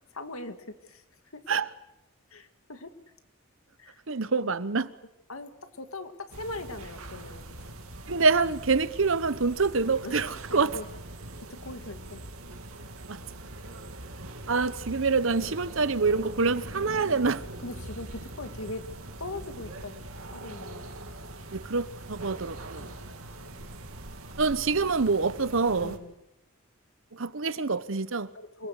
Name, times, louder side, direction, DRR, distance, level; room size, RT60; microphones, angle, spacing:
voice 1, 0.1-1.0 1.3-1.4 2.3-2.9 3.8-4.0 4.4-4.5 5.3-7.8 10.0-10.9 11.5-12.2 15.4-15.6 17.1-17.4 17.6-18.9 19.2-21.0 22.2-22.3 22.8-23.6 25.8-26.1 28.3-28.7, left 2 dB, 80° left, 2.1 m, -41 dB
voice 2, 4.1-4.9 8.1-10.8 13.1-13.2 14.5-17.4 21.5-22.9 24.4-26.0 27.2-28.3, right 4 dB, 65° right, 1.0 m, -26 dB
sound 1, 6.3-26.0, right 1 dB, 90° right, 2.8 m, -42 dB
27.0 x 20.0 x 8.1 m
head